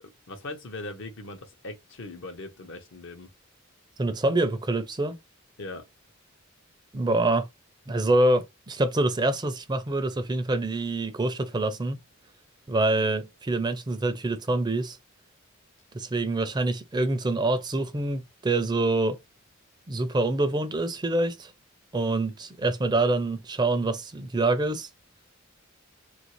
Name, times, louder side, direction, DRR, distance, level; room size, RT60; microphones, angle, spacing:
voice 1, 0.3-3.3 5.6-5.8, left 2 dB, 65° left, 0.8 m, -39 dB
voice 2, 4.0-5.2 6.9-7.5 7.9-12.0 12.7-15.0 15.9-19.2 19.9-21.5 21.9-24.9, right 2 dB, 20° right, 0.4 m, -26 dB
3.2 x 2.5 x 2.9 m
head